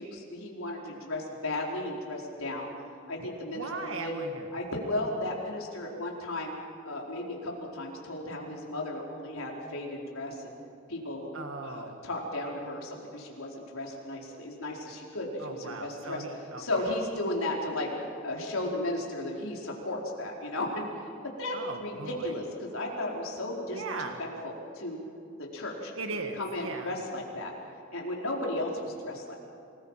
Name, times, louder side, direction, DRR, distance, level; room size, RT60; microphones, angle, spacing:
voice 1, 0.0-2.7 3.1-4.1 4.5-6.5 6.8-10.5 10.9-11.3 11.6-16.2 16.6-17.9 18.2-20.8 21.4-25.0 25.4-25.9 26.3-27.5 27.9-29.4, left 1 dB, 85° left, -2 dB, 4.6 m, -35 dB
voice 2, 3.5-4.5 11.3-12.0 15.4-16.7 21.5-22.3 23.7-24.2 26.0-27.0, right 3 dB, 75° right, 4 dB, 1.7 m, -38 dB
28.5 x 21.0 x 5.8 m, 2.7 s
head